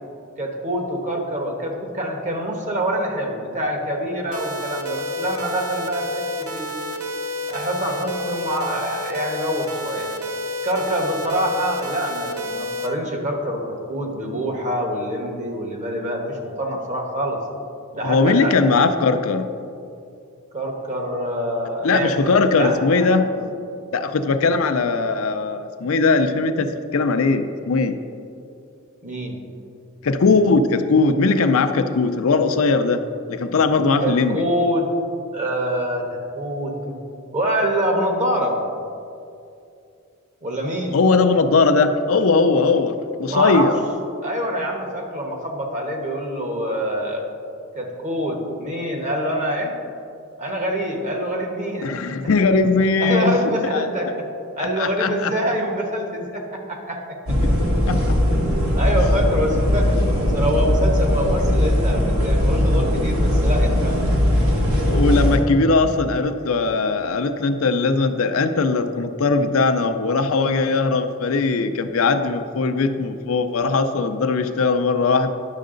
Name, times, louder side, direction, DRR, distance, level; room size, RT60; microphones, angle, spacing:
voice 1, 0.4-6.7 7.5-10.1 10.6-17.4 17.9-18.6 20.5-23.2 29.0-29.4 34.0-34.9 35.3-36.1 36.3-37.0 37.3-38.6 40.4-41.0 43.3-43.7 44.2-47.2 47.7-49.7 50.4-51.9 53.0-54.1 54.5-57.2 58.7-64.0, equal, 35° right, 1 dB, 1.2 m, -25 dB
sound 1, 4.3-12.9, left 1 dB, 85° right, 0.9 m, -30 dB
voice 2, 18.0-19.5 21.8-23.3 23.9-28.0 30.0-33.0 33.3-34.5 40.9-43.7 51.8-53.4 53.7-53.9 54.6-55.3 57.9-58.0 64.9-75.3, left 4 dB, 70° left, 8 dB, 0.5 m, -19 dB
sound 2, 57.2-65.4, equal, 65° right, 1.4 m, -19 dB
10.5 x 6.4 x 3.8 m, 2.5 s
head